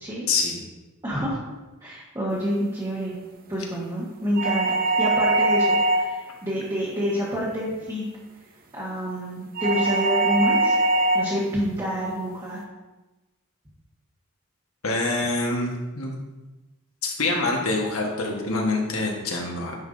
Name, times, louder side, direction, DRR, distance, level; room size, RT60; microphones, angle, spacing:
voice 1, 0.3-0.6 14.8-16.1 17.0-19.8, left 2 dB, 70° left, 0 dB, 1.3 m, -25 dB
voice 2, 1.0-1.4 1.8-3.1 3.5-8.0 8.7-10.8 11.1-12.6, equal, 20° right, -7 dB, 1.3 m, -28 dB
sound 1, 4.4-6.3 9.6-11.4, right 2 dB, 40° right, 0.6 m, -22 dB
9.6 x 5.6 x 2.6 m, 1.1 s
head